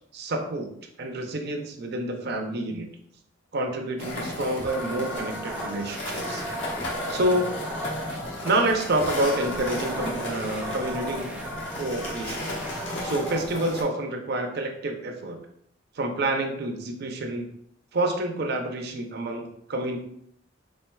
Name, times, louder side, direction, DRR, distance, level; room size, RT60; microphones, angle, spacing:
voice 1, 0.1-0.7 1.0-2.9 3.5-6.4 7.1-7.5 8.4-11.3 11.8-12.5 13.0-15.4 16.0-17.5 17.9-20.0, right 1 dB, 60° right, 3 dB, 0.6 m, -28 dB
sound 1, 4.0-13.8, left 1 dB, 70° left, 1.2 m, -34 dB
sound 2, 4.6-13.4, equal, 5° right, 0.4 m, -37 dB
4.3 x 3.8 x 2.2 m, 0.71 s
head